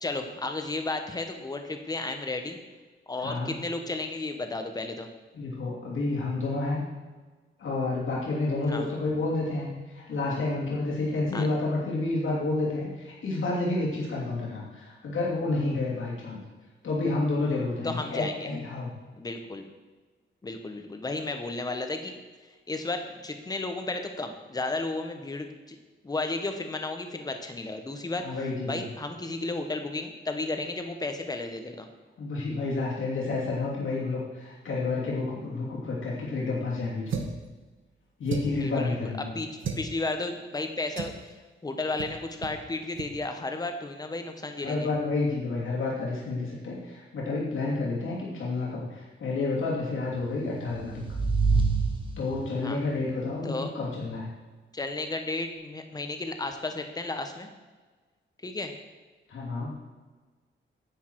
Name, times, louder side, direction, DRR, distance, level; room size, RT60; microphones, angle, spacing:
voice 1, 0.0-2.6 3.1-5.1 8.7-8.9 11.3-11.5 17.8-18.5 19.1-19.7 20.4-22.1 22.7-25.8 26.0-28.2 28.7-31.9 38.5-39.5 39.8-41.3 41.6-44.9 52.6-52.8 53.4-53.7 54.7-57.5 58.4-58.7, left 2 dB, 20° left, 6 dB, 1.0 m, -33 dB
voice 2, 5.3-6.8 7.6-16.4 16.8-18.9 28.2-28.8 32.2-37.2 38.2-39.3 44.6-51.0 52.2-54.3 59.3-59.7, left 3 dB, 80° left, -5 dB, 2.8 m, -30 dB
sound 1, 37.1-37.4 38.3-38.7 39.6-39.9 41.0-41.2 42.0-42.2 42.4-42.6 42.9-43.1, right 5 dB, 80° right, 1.2 m, -33 dB
sound 2, 50.4-52.7, right 4 dB, 25° right, 1.2 m, -27 dB
10.0 x 8.3 x 4.6 m, 1.3 s
wide cardioid pair, 180°, 20 cm